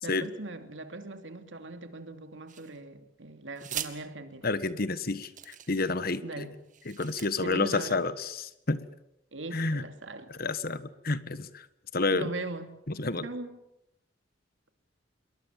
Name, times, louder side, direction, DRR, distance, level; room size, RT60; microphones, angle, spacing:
voice 1, 0.0-4.5 6.2-6.5 7.4-8.0 9.3-10.3 12.1-12.7 13.2-13.6, right 2 dB, 80° right, 2.8 m, -40 dB
sound 1, 2.5-3.0 3.6-3.9 4.7-4.8 5.2-6.0 6.6-7.3, right 10 dB, 45° right, 2.2 m, -40 dB
voice 2, 4.4-6.4 6.8-8.8 9.5-9.8 10.4-11.6 11.9-12.3 13.0-13.3, left 3 dB, 50° left, 1.5 m, -30 dB
27.0 x 22.5 x 7.5 m
head